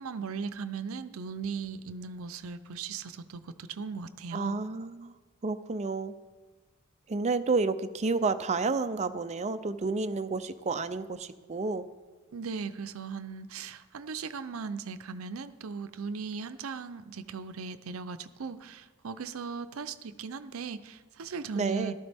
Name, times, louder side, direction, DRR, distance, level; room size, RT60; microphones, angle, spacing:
voice 1, 0.0-4.6 12.3-21.9, right 5 dB, 80° right, 12 dB, 0.6 m, -38 dB
voice 2, 4.3-5.1 5.4-6.1 7.1-11.9 21.6-21.9, right 3 dB, 30° right, 11 dB, 0.5 m, -30 dB
13.5 x 12.0 x 3.5 m, 1.3 s
head